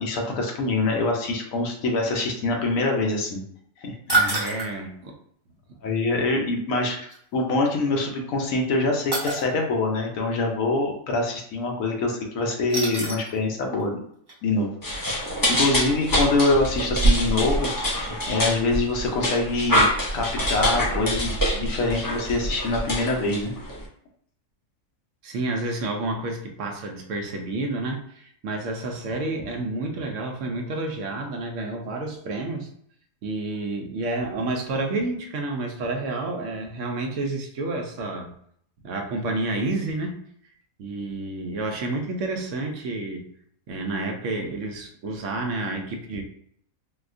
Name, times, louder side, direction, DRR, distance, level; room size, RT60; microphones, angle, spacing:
voice 1, 0.0-3.4 3.8-4.6 5.8-7.0 7.3-14.0 14.4-14.7 15.5-19.9 20.1-23.5, left 2 dB, 80° left, 1 dB, 1.1 m, -25 dB
sound 1, 4.1-4.7 7.1-7.2 9.1-9.4 12.7-13.4 13.8-13.9 14.3-14.4, right 3 dB, 20° right, 0.8 m, -25 dB
voice 2, 4.3-5.2 25.2-32.7 33.2-38.3 38.8-40.2 40.8-43.3 43.7-46.2, right 2 dB, 70° right, 3 dB, 0.9 m, -30 dB
sound 2, 14.8-23.8, equal, 25° left, 0.4 m, -25 dB
4.0 x 2.2 x 2.5 m, 0.67 s
omnidirectional pair, 1.4 m